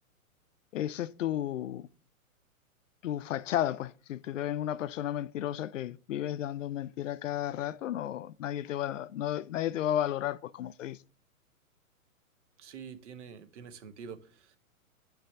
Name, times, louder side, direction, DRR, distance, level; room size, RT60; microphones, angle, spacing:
voice 1, 0.7-1.9 3.0-11.0, left 11 dB, 60° left, 0.5 m, -33 dB
voice 2, 12.6-14.6, right 6 dB, 55° right, 1.0 m, -46 dB
9.3 x 3.4 x 6.8 m
hypercardioid pair, 125°, 43 cm